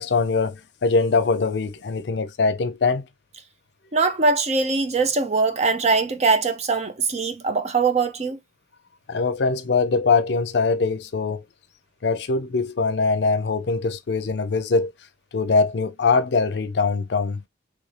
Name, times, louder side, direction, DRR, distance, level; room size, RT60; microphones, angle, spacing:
voice 1, 0.0-3.0 9.1-11.4 12.0-14.9 15.3-17.4, left 4 dB, 65° left, 0.5 m, -22 dB
voice 2, 3.9-8.4, right 4 dB, 35° right, 0.5 m, -22 dB
3.2 x 2.6 x 3.2 m
head